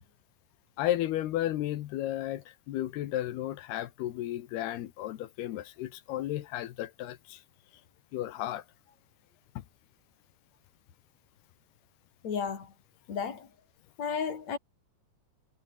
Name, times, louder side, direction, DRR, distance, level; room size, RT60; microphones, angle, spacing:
voice 1, 0.8-7.4 8.1-8.6 9.6-9.7, left 13 dB, 70° left, 3.0 m, -33 dB
voice 2, 12.2-12.7 13.1-13.5 14.0-14.6, left 6 dB, 40° left, 4.1 m, -33 dB
omnidirectional pair, 5.1 m